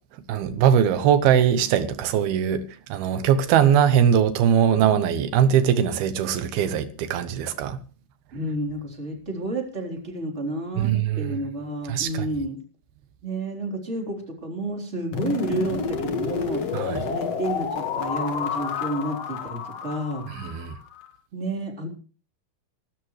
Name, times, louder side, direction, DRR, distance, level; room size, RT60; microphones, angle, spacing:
voice 1, 0.3-7.8 10.8-11.4 11.9-12.3 16.7-17.1 20.3-20.8, right 9 dB, 80° right, 2.9 m, -21 dB
voice 2, 8.3-12.6 13.2-16.7 17.0-20.2 21.3-21.9, right 1 dB, 20° right, 3.5 m, -30 dB
sound 1, 15.1-21.1, left 6 dB, 50° left, 2.2 m, -30 dB
24.5 x 13.0 x 3.1 m
omnidirectional pair, 4.4 m